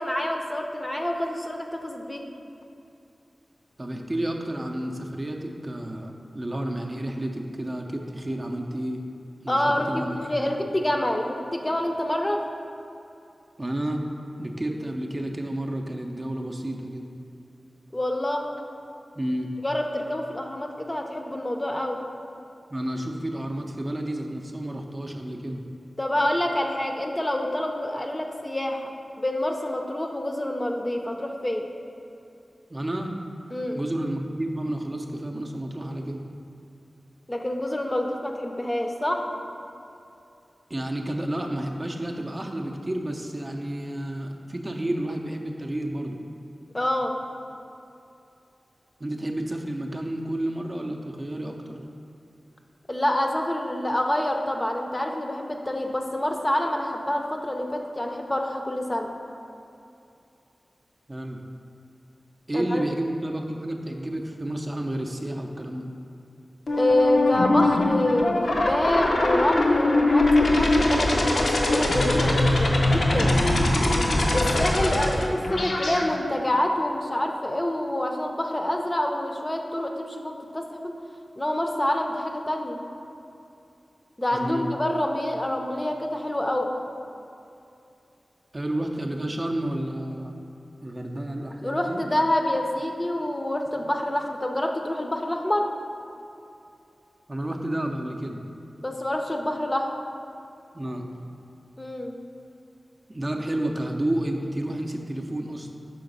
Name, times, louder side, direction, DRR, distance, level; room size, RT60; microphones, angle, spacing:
voice 1, 0.0-2.2 9.5-12.4 17.9-18.5 19.6-22.0 26.0-28.9 29.2-31.7 33.5-33.8 37.3-39.2 46.7-47.1 52.9-59.1 62.5-62.8 66.7-73.4 74.3-80.9 81.4-82.8 84.2-86.7 91.6-95.7 98.8-99.9 101.8-102.1, left 1 dB, 25° left, 2 dB, 0.6 m, -27 dB
voice 2, 3.8-9.0 9.4-10.5 13.6-14.1 14.4-17.0 19.1-19.5 22.7-25.6 32.7-33.2 33.7-36.2 40.7-46.2 49.0-51.8 61.1-61.4 62.5-65.9 74.9-75.0 84.3-84.7 88.5-90.4 90.8-92.0 93.7-93.8 97.3-98.4 100.7-101.2 103.1-105.8, right 1 dB, 30° right, 1 dB, 0.5 m, -31 dB
sound 1, 66.7-76.0, left 2 dB, 85° left, 0.7 m, -22 dB
5.7 x 3.9 x 5.2 m, 2.7 s
cardioid pair, 55°, 0 cm